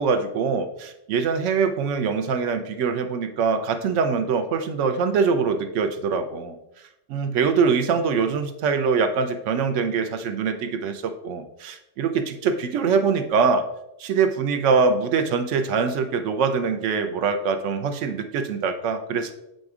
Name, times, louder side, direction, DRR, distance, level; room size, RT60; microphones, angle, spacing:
voice 1, 0.0-6.6 7.1-13.7 14.0-19.3, right 5 dB, 75° right, 8 dB, 0.9 m, -23 dB
7.7 x 5.1 x 2.4 m, 0.86 s
omnidirectional pair, 1.3 m